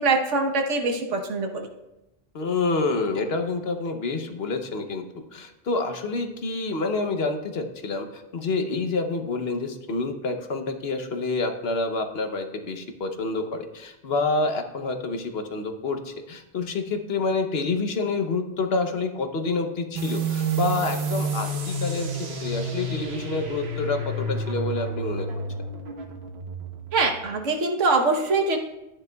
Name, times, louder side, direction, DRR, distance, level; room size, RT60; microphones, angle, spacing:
voice 1, 0.0-1.7 26.9-28.6, right 3 dB, 80° right, 3 dB, 1.4 m, -23 dB
voice 2, 2.3-25.3, left 3 dB, 60° left, 6 dB, 1.0 m, -28 dB
sound 1, 20.0-27.2, right 2 dB, 60° right, 1.2 m, -30 dB
12.0 x 9.9 x 2.3 m, 0.95 s
omnidirectional pair, 1.2 m